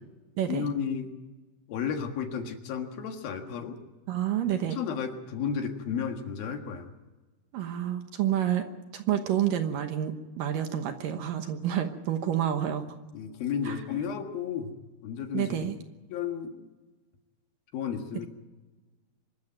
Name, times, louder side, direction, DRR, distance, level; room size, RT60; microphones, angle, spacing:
voice 1, 0.5-1.1 1.7-3.8 4.7-6.9 13.1-14.7 15.0-15.7 16.1-16.7 17.7-18.3, left 7 dB, 70° left, 5 dB, 3.4 m, -33 dB
voice 2, 4.1-4.8 7.5-8.7 8.9-13.0 13.7-13.8 15.3-15.8, right 10 dB, 65° right, 7 dB, 2.5 m, -29 dB
24.5 x 13.5 x 9.2 m, 1.2 s
omnidirectional pair, 4.6 m